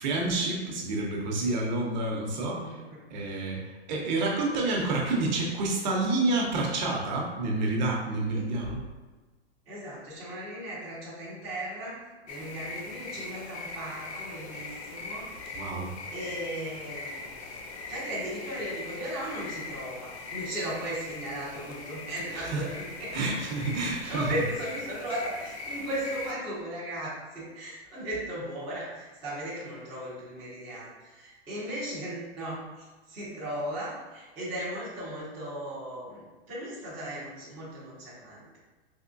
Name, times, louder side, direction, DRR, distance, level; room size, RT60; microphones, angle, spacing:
voice 1, 0.0-2.8 3.1-8.8 15.5-15.9 22.3-22.6 23.1-24.3, right 2 dB, 45° right, -1 dB, 0.7 m, -29 dB
voice 2, 2.5-3.2 8.3-8.4 9.7-12.0 12.3-15.3 16.1-17.3 17.9-23.1 24.1-38.6, right 1 dB, 5° right, -12 dB, 0.3 m, -37 dB
sound 1, 12.3-26.3, left 3 dB, 80° left, 0.7 m, -41 dB
3.6 x 3.0 x 2.5 m, 1.3 s
hypercardioid pair, 160°, 33 cm